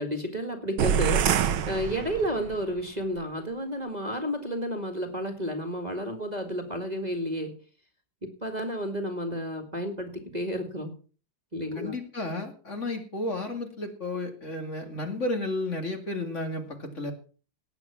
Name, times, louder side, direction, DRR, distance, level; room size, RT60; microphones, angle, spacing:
voice 1, 0.0-7.5 8.2-10.9 11.5-12.0, equal, 20° right, 4 dB, 2.0 m, -31 dB
sound 1, 0.8-2.6, right 8 dB, 90° right, 1.8 m, -26 dB
voice 2, 11.7-17.1, left 2 dB, 35° left, 4 dB, 2.6 m, -32 dB
18.5 x 8.1 x 5.8 m, 0.39 s
omnidirectional pair, 2.1 m